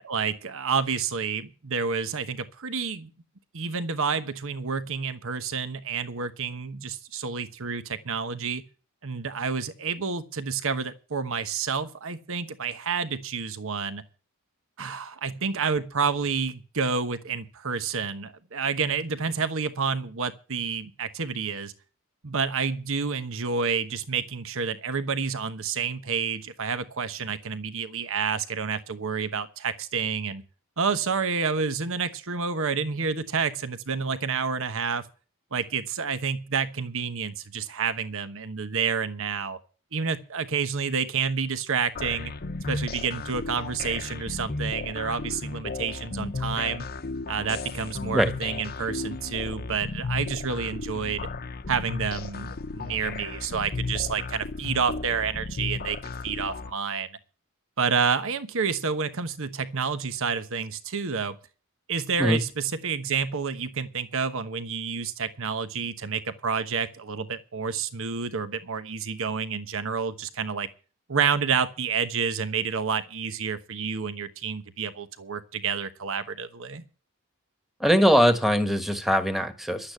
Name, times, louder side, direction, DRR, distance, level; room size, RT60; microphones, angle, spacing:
voice 1, 0.0-3.1 3.5-8.6 9.0-14.0 14.8-21.7 22.2-30.4 30.8-35.1 35.5-39.6 39.9-42.3 42.7-46.9 47.3-51.3 51.7-56.0 56.2-57.1 57.8-61.4 61.9-70.7 71.1-76.8, right 5 dB, 65° right, 11 dB, 1.1 m, -29 dB
sound 1, 42.0-56.7, left 3 dB, 45° left, 0.9 m, -34 dB
voice 2, 77.8-79.9, equal, ahead, 8 dB, 1.5 m, -21 dB
11.5 x 8.8 x 8.5 m, 0.36 s
head